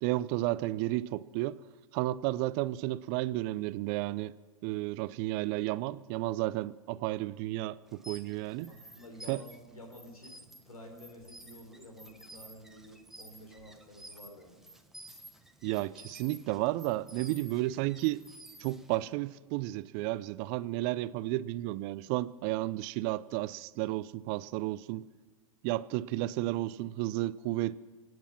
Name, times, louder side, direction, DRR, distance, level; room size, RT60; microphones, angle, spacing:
voice 1, 0.0-1.6 1.9-4.3 4.6-8.7 9.3-9.4 15.6-18.2 18.6-25.1 25.6-27.8, right 17 dB, 40° right, 0.6 m, -32 dB
sound 1, 7.9-19.1, right 1 dB, ahead, 1.2 m, -52 dB
voice 2, 8.7-14.7, equal, 90° left, 3.8 m, -51 dB
25.0 x 9.4 x 6.0 m
hypercardioid pair, 110°, 18 cm